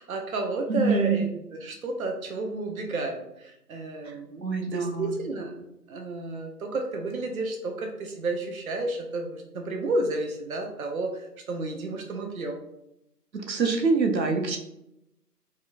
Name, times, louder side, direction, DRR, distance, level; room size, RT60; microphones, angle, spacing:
voice 1, 0.0-4.4 4.7-12.6, right 2 dB, 60° right, 3 dB, 0.6 m, -31 dB
voice 2, 0.7-1.2 4.0-4.1 4.4-5.1 13.3-14.6, right 4 dB, 90° right, 4 dB, 0.8 m, -25 dB
4.3 x 2.1 x 2.4 m, 0.83 s
figure-of-eight pair, 155°, 49 cm